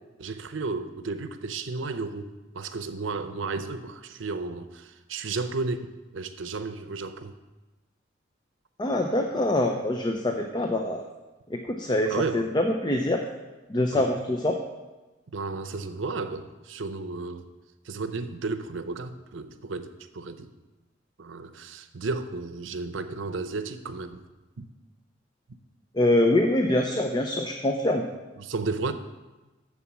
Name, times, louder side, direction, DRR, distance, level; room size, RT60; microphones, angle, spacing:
voice 1, 0.2-5.9 6.1-7.3 12.1-12.5 13.9-14.2 15.3-17.5 17.9-20.5 21.2-24.2 24.6-24.7 28.4-28.9, right 3 dB, 90° right, 10 dB, 0.7 m, -33 dB
voice 2, 8.8-11.0 11.5-13.2 13.7-14.6 25.9-28.1, left 1 dB, 25° left, 3 dB, 0.6 m, -24 dB
7.3 x 7.2 x 6.0 m, 1.1 s
head